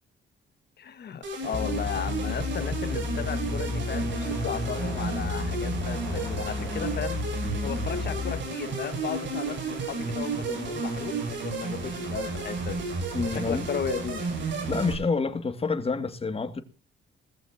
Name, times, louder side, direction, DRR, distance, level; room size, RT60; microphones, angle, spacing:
voice 1, 0.8-12.9 13.2-14.3, left 8 dB, 55° left, 1.8 m, -35 dB
sound 1, 1.2-14.9, right 3 dB, 70° right, 7.3 m, -32 dB
sound 2, 1.5-8.4, left 5 dB, 15° left, 7.5 m, -33 dB
voice 2, 13.1-13.7 14.7-16.6, left 4 dB, 30° left, 2.3 m, -28 dB
20.5 x 14.5 x 2.9 m
cardioid pair, 90°, 20 cm